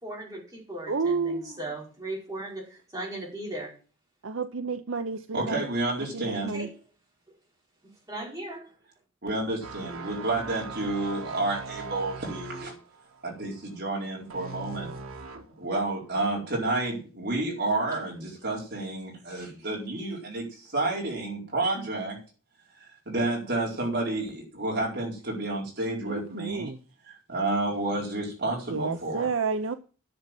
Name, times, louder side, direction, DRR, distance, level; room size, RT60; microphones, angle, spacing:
voice 1, 0.0-3.7 6.3-6.7 7.8-8.8 10.0-10.2, right 1 dB, 15° right, 5.2 m, -38 dB
voice 2, 0.9-1.6 4.2-5.7 6.1-6.7 26.1-26.8 28.7-29.8, right 4 dB, 65° right, 0.6 m, -30 dB
voice 3, 5.3-6.5 9.2-12.7 13.2-14.9 15.6-22.2 22.8-26.7 27.1-29.3, right 2 dB, 50° right, 4.5 m, -30 dB
sound 1, 9.6-15.6 16.0-16.2, right 4 dB, 85° right, 1.7 m, -40 dB
10.5 x 6.7 x 7.6 m
head